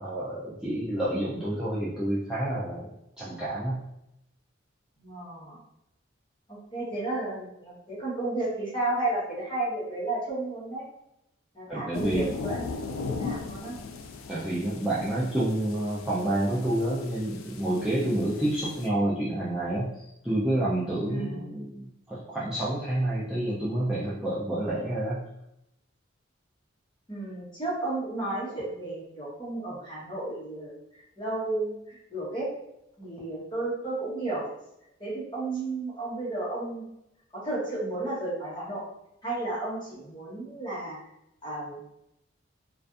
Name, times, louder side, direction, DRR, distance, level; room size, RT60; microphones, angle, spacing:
voice 1, 0.0-2.9 3.2-3.9 11.7-12.3 14.3-25.3, right 1 dB, 5° right, -10 dB, 0.3 m, -29 dB
voice 2, 5.0-5.6 6.5-10.8 11.5-13.8 21.1-21.5 27.1-30.8 31.2-32.5 33.0-34.5 35.0-36.8 37.3-38.8 39.2-41.0 41.4-41.8, right 2 dB, 20° left, -7 dB, 0.9 m, -33 dB
sound 1, 11.9-18.9, left 4 dB, 85° left, 0.3 m, -38 dB
2.4 x 2.4 x 2.4 m, 0.82 s
head